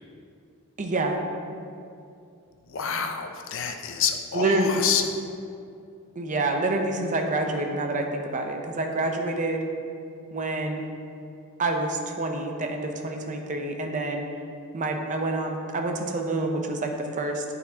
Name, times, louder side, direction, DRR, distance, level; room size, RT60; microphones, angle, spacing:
voice 1, 0.8-1.2 4.3-4.7 6.2-9.6 10.3-10.8 11.6-14.3 14.7-17.4, right 2 dB, 35° right, 3 dB, 0.6 m, -27 dB
voice 2, 2.7-5.1, left 7 dB, 65° left, 5 dB, 0.5 m, -28 dB
11.5 x 4.2 x 2.8 m, 2.5 s
head